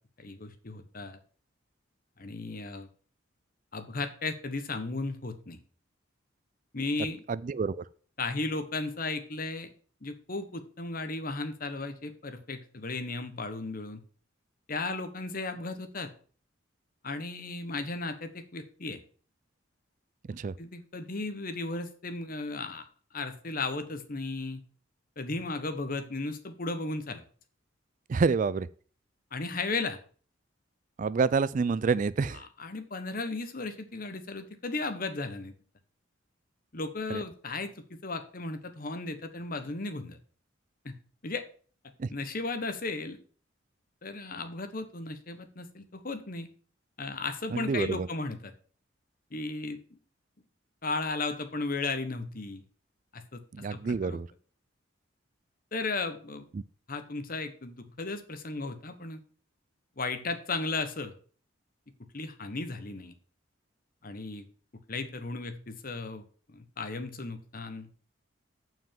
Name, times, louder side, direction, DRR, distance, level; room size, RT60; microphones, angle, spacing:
voice 1, 0.2-1.2 2.2-2.9 3.7-5.6 6.7-7.2 8.2-9.7 10.0-14.0 14.7-16.1 17.0-19.0 20.6-22.8 23.1-24.6 25.2-27.2 29.3-30.0 32.6-35.5 36.7-40.2 40.8-41.0 41.2-41.4 42.1-43.2 44.0-46.5 47.0-48.5 49.3-49.8 50.8-52.6 53.1-53.4 53.7-54.2 55.7-56.5 56.9-59.2 60.0-61.1 62.1-63.1 64.0-64.4 64.9-66.2 66.5-67.9, left 3 dB, 45° left, 1.1 m, -35 dB
voice 2, 7.3-7.8 20.3-20.5 28.1-28.7 31.0-32.4 37.1-37.2 42.0-42.1 47.5-48.1 53.5-54.3 56.5-56.6, right 4 dB, 40° right, 0.3 m, -28 dB
7.1 x 6.0 x 7.3 m
head